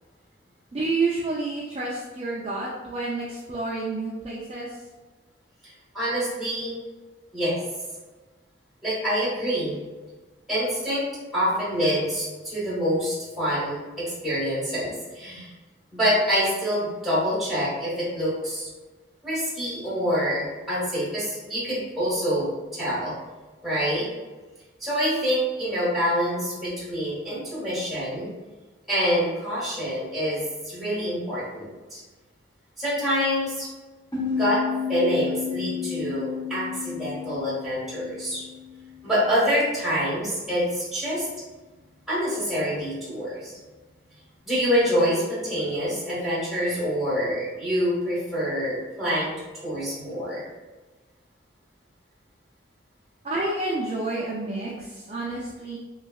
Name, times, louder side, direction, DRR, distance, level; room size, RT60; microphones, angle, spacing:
voice 1, 0.7-4.8 53.2-55.8, right 3 dB, 30° right, -6 dB, 0.3 m, -29 dB
voice 2, 5.9-6.8 7.3-7.6 8.8-9.8 10.5-11.1 11.3-15.5 15.9-18.7 19.2-23.1 23.6-24.1 24.8-28.3 28.9-32.0 32.8-33.7 34.3-34.6 34.9-38.4 39.0-41.3 42.1-43.5 44.5-49.3 49.6-50.4, equal, ahead, -10 dB, 1.1 m, -26 dB
sound 1, 34.1-39.4, left 7 dB, 20° left, 1.0 m, -32 dB
3.1 x 2.7 x 2.3 m, 1.3 s
head